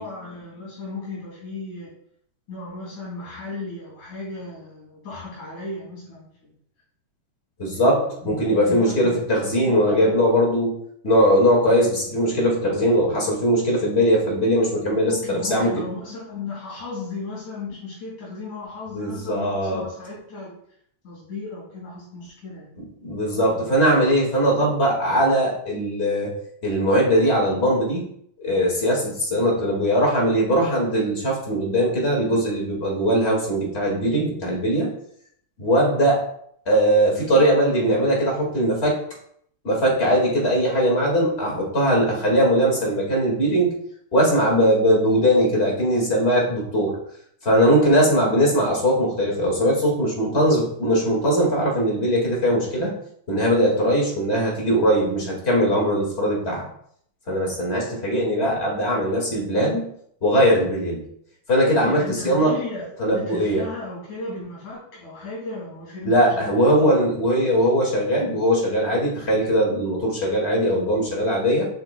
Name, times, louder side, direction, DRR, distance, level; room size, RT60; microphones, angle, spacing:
voice 1, 0.0-1.9 2.5-6.5 7.7-9.2 9.7-10.2 15.1-20.6 21.0-22.7 23.4-23.9 61.8-67.1, left 3 dB, 70° left, -7 dB, 4.0 m, -35 dB
voice 2, 7.6-10.8 11.0-15.8 18.9-19.8 23.0-26.3 26.6-28.1 28.4-34.9 35.6-36.2 36.6-39.0 39.6-43.8 44.1-47.0 47.4-52.9 53.3-56.6 57.3-59.9 60.2-61.0 61.5-62.6 63.0-63.7 66.0-71.7, equal, 25° left, -2 dB, 1.5 m, -20 dB
7.5 x 6.6 x 2.2 m, 0.67 s
omnidirectional pair, 3.6 m